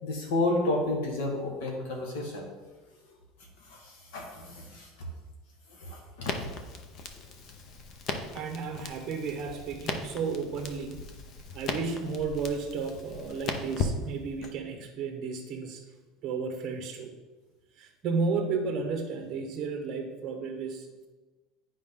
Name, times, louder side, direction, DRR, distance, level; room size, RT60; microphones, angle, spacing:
voice 1, 0.0-2.5 3.7-3.8 4.1-4.9 5.8-6.5, left 2 dB, 75° left, 0 dB, 1.8 m, -31 dB
Crackle, 6.2-14.5, left 4 dB, 35° left, 0.6 m, -37 dB
voice 2, 8.3-11.0 11.5-15.8 16.2-17.1 17.8-20.8, right 5 dB, 30° right, 4 dB, 1.1 m, -33 dB
9.5 x 5.0 x 3.8 m, 1.2 s
cardioid pair, 175°, 0 cm